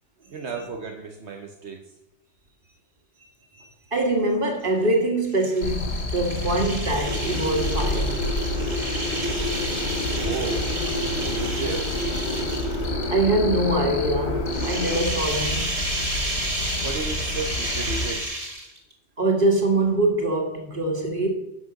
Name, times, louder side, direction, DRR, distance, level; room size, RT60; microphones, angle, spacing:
voice 1, 0.3-1.9 10.1-10.7 11.1-11.9 16.8-18.3, right 4 dB, 75° right, 2 dB, 1.4 m, -33 dB
voice 2, 3.6-8.2 13.1-15.7 19.2-21.3, right 2 dB, 50° right, 1 dB, 2.4 m, -24 dB
sound 1, 5.3-13.0 14.5-18.9, right 1 dB, 30° right, 2.1 m, -32 dB
Cricket, 5.6-18.1, left 2 dB, 65° left, 1.5 m, -30 dB
Aproaching the Radiation, 7.1-15.0, left 1 dB, 50° left, 1.6 m, -30 dB
11.5 x 6.2 x 7.1 m, 0.94 s
omnidirectional pair, 1.1 m